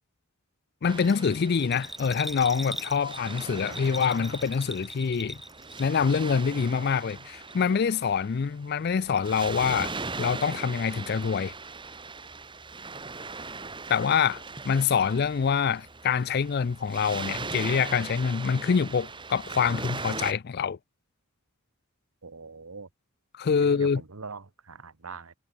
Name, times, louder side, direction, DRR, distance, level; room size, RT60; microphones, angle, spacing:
voice 1, 0.8-5.4 5.8-11.5 13.9-20.8 23.4-24.0, left 6 dB, 45° left, 0.4 m, -25 dB
Waves surf, 0.9-20.3, right 3 dB, 20° right, 2.2 m, -39 dB
Bell, 1.0-6.1 6.4-7.2 7.5-7.6, equal, ahead, 2.4 m, -40 dB
voice 2, 22.2-22.9 23.6-25.3, right 4 dB, 80° right, 1.3 m, -42 dB
head